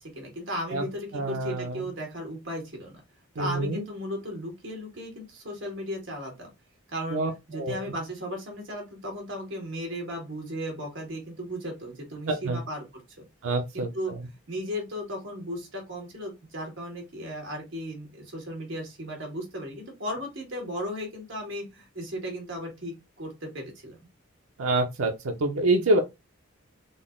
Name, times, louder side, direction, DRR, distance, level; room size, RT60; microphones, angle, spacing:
voice 1, 0.0-3.0 3.3-6.5 6.9-7.2 7.5-13.2 13.7-14.1 14.5-24.0, equal, 55° right, 1.7 m, -36 dB
voice 2, 1.1-1.9 3.4-3.9 7.1-7.9 12.3-12.6 13.4-14.2 24.6-26.0, right 2 dB, 75° right, 0.6 m, -27 dB
3.9 x 2.0 x 3.6 m
head